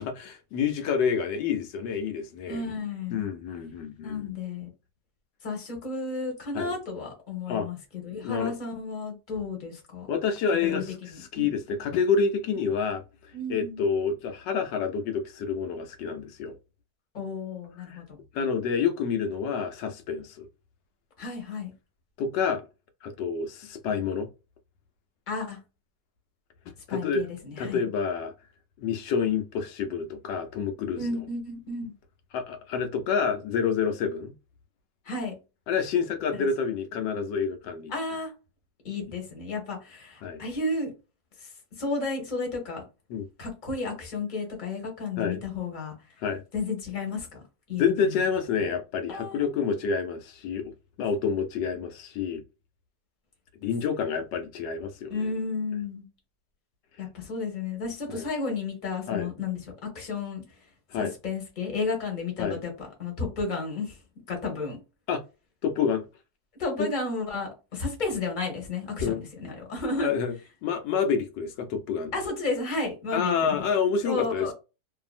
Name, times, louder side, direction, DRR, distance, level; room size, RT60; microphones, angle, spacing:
voice 1, 0.0-2.7 3.1-4.4 6.5-6.7 7.5-7.7 8.2-8.5 10.1-10.9 11.3-13.0 13.5-16.5 17.8-18.0 18.3-20.5 22.2-22.6 23.0-24.3 26.9-27.2 27.6-28.3 28.8-31.0 32.3-34.3 35.7-37.9 40.2-40.4 43.1-43.3 45.2-45.4 46.2-46.4 47.8-50.7 51.0-52.4 53.6-55.3 58.1-58.2 59.1-59.3 60.9-61.1 62.4-62.6 65.1-65.2 65.6-66.1 66.8-66.9 69.0-69.2 70.0-70.3 70.6-72.1 73.1-74.5, left 6 dB, 85° left, 1.3 m, -28 dB
voice 2, 2.5-3.2 4.0-4.7 5.4-10.1 10.6-10.8 11.1-11.5 12.5-12.7 13.3-13.8 17.1-18.2 21.2-21.7 25.3-25.6 26.9-27.8 30.9-31.9 35.0-35.3 36.3-36.5 37.9-38.3 38.8-40.9 41.4-41.5 41.8-42.8 43.4-45.9 46.5-47.4 47.7-48.2 49.1-49.5 55.1-56.1 57.0-60.4 60.9-64.0 64.3-64.8 66.6-70.1 72.1-73.7 74.0-74.5, left 3 dB, 30° left, 1.0 m, -32 dB
2.7 x 2.6 x 2.4 m
omnidirectional pair, 1.9 m